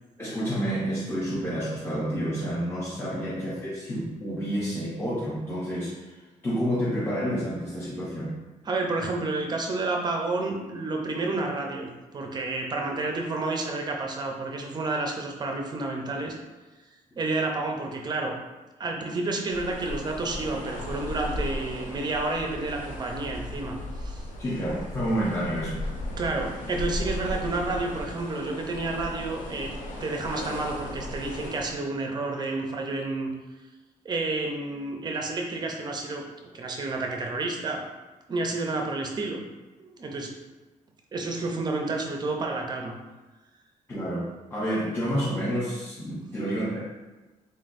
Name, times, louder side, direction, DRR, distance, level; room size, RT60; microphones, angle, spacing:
voice 1, 0.2-6.1 6.4-8.3 24.4-25.9 43.9-46.8, equal, 15° left, -9 dB, 0.8 m, -29 dB
voice 2, 8.6-11.9 12.1-16.4 17.2-18.4 18.8-24.3 26.2-29.7 30.0-33.3 34.0-36.2 36.5-37.8 38.3-39.4 39.8-40.3 41.1-42.9 46.2-46.3, right 2 dB, 30° right, 1 dB, 0.5 m, -30 dB
sound 1, 19.5-31.7, left 1 dB, 70° left, 0.7 m, -36 dB
4.2 x 3.9 x 2.5 m, 1.2 s
cardioid pair, 155°, 14 cm